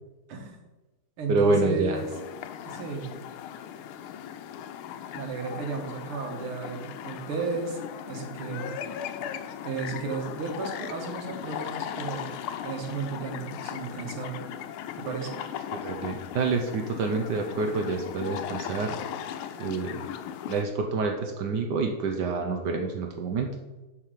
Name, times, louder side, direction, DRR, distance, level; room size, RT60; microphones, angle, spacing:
voice 1, 0.3-0.6 1.2-2.1 2.7-3.1 5.1-7.8 8.1-8.8 9.6-12.3 12.6-14.4 15.0-15.4, right 4 dB, 85° right, 3 dB, 2.1 m, -34 dB
voice 2, 1.3-2.0 15.7-19.0 19.6-20.0 20.5-23.5, right 3 dB, 65° right, 3 dB, 1.2 m, -27 dB
sound 1, 1.9-20.6, left 9 dB, 85° left, 1.5 m, -38 dB
7.0 x 4.6 x 6.6 m, 1.1 s
omnidirectional pair, 2.4 m